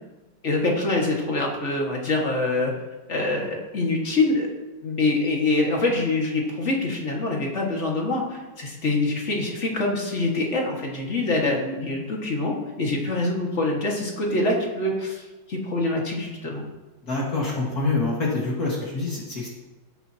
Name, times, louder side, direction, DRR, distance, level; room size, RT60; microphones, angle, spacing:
voice 1, 0.4-2.7 3.1-4.5 4.8-16.6, left 2 dB, 40° left, -1 dB, 2.2 m, -25 dB
voice 2, 17.0-19.5, left 3 dB, 55° left, -5 dB, 2.3 m, -26 dB
16.0 x 9.1 x 2.9 m, 1.2 s
omnidirectional pair, 1.9 m